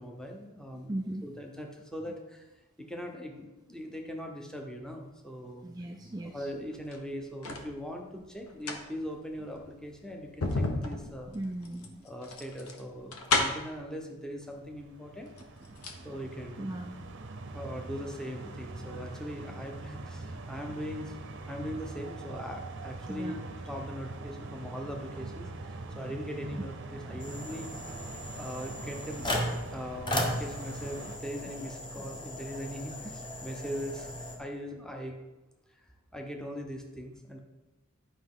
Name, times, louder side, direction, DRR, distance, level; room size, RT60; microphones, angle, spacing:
voice 1, 0.0-0.9 1.2-2.4 2.8-5.7 6.3-11.4 12.0-15.3 16.0-16.7 17.4-21.1 21.5-29.3 29.7-34.1 34.4-35.2 36.1-37.4, equal, 5° left, 1 dB, 0.8 m, -40 dB
voice 2, 0.9-1.2 5.6-6.5 11.3-12.0 15.7-16.2 16.6-17.0 23.1-23.4 27.0-27.2 32.0-32.1 32.9-33.0, right 1 dB, 20° right, 3 dB, 0.3 m, -38 dB
sound 1, 6.7-7.7 8.4-13.8 14.8-14.9 15.2-16.0 16.3-16.4, left 2 dB, 80° left, 0.9 m, -33 dB
sound 2, 14.5-31.2, right 2 dB, 55° right, 0.6 m, -43 dB
sound 3, 27.2-34.4, equal, 20° left, 1.1 m, -36 dB
10.0 x 5.3 x 3.7 m, 1.1 s
head